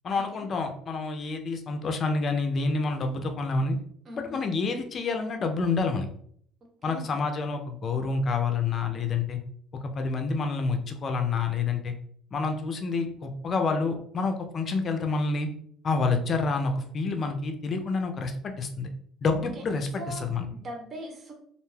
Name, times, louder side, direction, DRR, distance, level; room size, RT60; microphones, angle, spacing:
voice 1, 0.0-3.8 4.3-6.1 6.8-9.4 9.8-11.9 12.3-15.5 15.8-18.9 19.2-20.5, left 4 dB, 45° left, 5 dB, 0.5 m, -28 dB
voice 2, 4.0-4.5 6.8-7.2 19.5-19.6 20.0-21.3, right 1 dB, 40° right, 1 dB, 0.9 m, -41 dB
2.5 x 2.2 x 3.2 m, 0.65 s
supercardioid pair, 70°, 0 cm